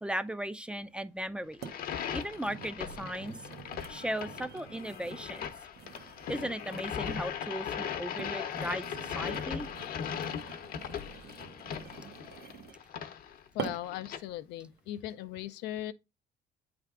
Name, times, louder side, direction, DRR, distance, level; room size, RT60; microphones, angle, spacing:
voice 1, 0.0-1.7 2.1-3.4 3.9-5.5 6.3-9.7, right 1 dB, 5° right, 0.4 m, -37 dB
sound 1, 0.8-0.9 1.6-1.8 2.2-7.3 8.0-12.9 13.6-14.0 14.6-14.8, right 8 dB, 80° right, 1.0 m, -46 dB
sound 2, 1.5-14.2, left 8 dB, 60° left, 0.8 m, -39 dB
voice 2, 13.5-15.9, left 13 dB, 85° left, 0.5 m, -38 dB
8.1 x 3.4 x 3.6 m
cardioid pair, 110°, 17 cm